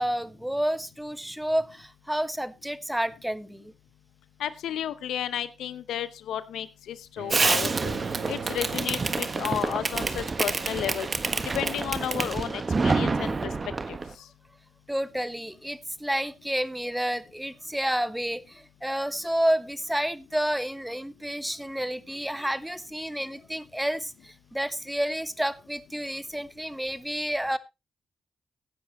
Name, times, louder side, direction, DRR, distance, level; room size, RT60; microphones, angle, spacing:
voice 1, 0.0-3.7 14.9-27.6, equal, 5° right, 15 dB, 1.1 m, -30 dB
voice 2, 4.4-8.0 8.3-11.1 11.5-13.3 13.9-14.0, left 10 dB, 85° left, 15 dB, 0.7 m, -32 dB
Bowed string instrument, 7.2-13.2, right 10 dB, 80° right, 1.1 m, -43 dB
Fireworks, 7.3-14.1, right 3 dB, 40° right, 1.4 m, -27 dB
15.5 x 9.7 x 3.0 m, 0.24 s
supercardioid pair, 55°, 0 cm